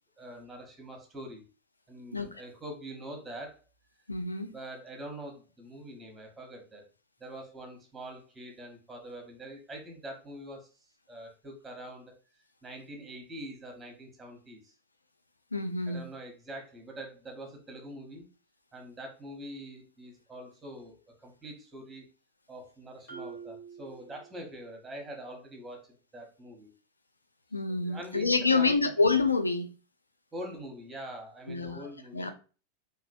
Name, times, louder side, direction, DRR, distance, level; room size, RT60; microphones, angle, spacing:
voice 1, 0.2-1.4 1.9-3.6 4.5-6.8 7.2-10.7 11.1-12.1 12.6-14.7 15.9-18.3 18.7-22.0 22.5-26.7 27.7-28.9 30.3-32.3, right 1 dB, 10° right, 0.9 m, -44 dB
voice 2, 4.1-4.5 15.5-16.0 27.5-29.7 31.5-31.9 32.1-32.3, left 4 dB, 80° left, 0.3 m, -27 dB
Marimba xylophone, 23.1-24.8, right 5 dB, 50° left, 1.2 m, -46 dB
3.0 x 2.4 x 2.5 m
figure-of-eight pair, 90°, 0 cm